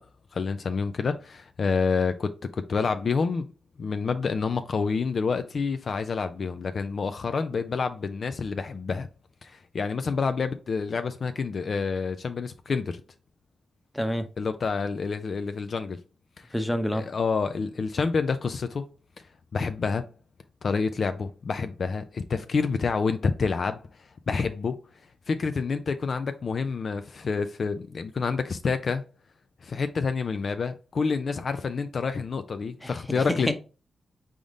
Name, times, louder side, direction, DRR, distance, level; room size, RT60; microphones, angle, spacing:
voice 1, 0.3-3.5 3.8-9.1 9.4-13.0 14.4-16.0 16.4-16.5 16.9-18.9 19.5-20.1 20.6-23.8 24.3-24.8 25.3-29.1 29.6-33.5, left 5 dB, 60° left, 0.4 m, -28 dB
voice 2, 13.9-14.3 16.5-17.0 32.8-33.5, equal, 10° left, 0.8 m, -28 dB
3.9 x 3.5 x 3.6 m
cardioid pair, 60°, 0 cm